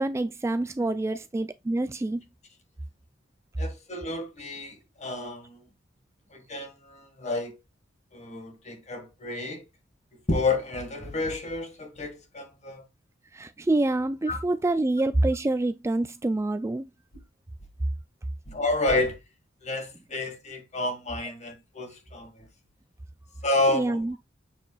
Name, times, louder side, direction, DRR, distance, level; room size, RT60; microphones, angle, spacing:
voice 1, 0.0-2.2 13.3-16.9 23.7-24.2, right 2 dB, 15° right, 0.3 m, -26 dB
voice 2, 3.6-5.6 6.3-7.6 8.1-9.6 10.3-12.8 14.3-14.4 18.5-19.2 19.6-22.5 23.4-24.2, left 2 dB, 35° left, 1.8 m, -30 dB
7.4 x 6.6 x 2.3 m
head